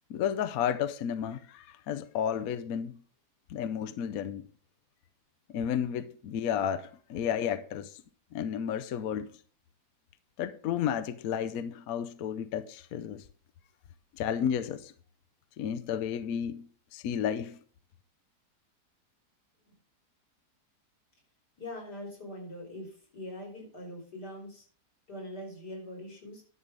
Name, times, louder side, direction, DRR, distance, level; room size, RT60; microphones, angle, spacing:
voice 1, 0.1-2.9 3.5-4.4 5.5-7.9 8.3-9.3 10.4-13.2 14.2-14.9 15.6-17.6, left 8 dB, 70° left, 1.0 m, -32 dB
voice 2, 21.6-24.6 25.1-26.4, left 1 dB, 90° left, 4.6 m, -42 dB
11.0 x 6.7 x 5.0 m
omnidirectional pair, 1.7 m